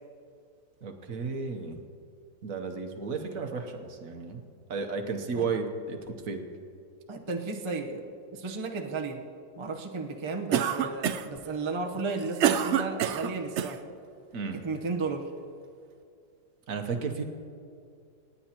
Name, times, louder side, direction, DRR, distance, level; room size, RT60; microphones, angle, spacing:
voice 1, 0.8-1.8 2.4-6.0 6.3-6.4 14.3-14.6 16.7-17.2, right 4 dB, 55° right, 5 dB, 1.3 m, -33 dB
voice 2, 7.1-8.0 8.3-9.2 9.6-13.8 14.5-15.3, right 3 dB, 30° right, 1 dB, 0.6 m, -34 dB
Cough, 10.5-11.4 12.0-13.8, right 9 dB, 85° right, 0.6 m, -27 dB
27.5 x 9.7 x 2.9 m, 2.4 s
omnidirectional pair, 1.8 m